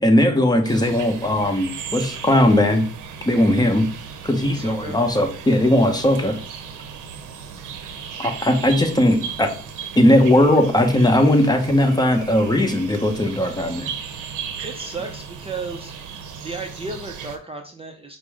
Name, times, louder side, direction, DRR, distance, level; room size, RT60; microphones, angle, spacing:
voice 1, 0.0-2.8 3.3-3.9 4.2-6.3 8.2-9.5 10.0-13.9, left 1 dB, 15° left, 4 dB, 0.9 m, -18 dB
sound 1, 0.6-17.4, right 7 dB, 80° right, 0.7 m, -36 dB
voice 2, 4.5-5.0 14.6-15.9 16.4-18.2, right 3 dB, 20° right, 3 dB, 0.5 m, -33 dB
5.2 x 2.1 x 4.8 m, 0.43 s
cardioid pair, 90°, 30 cm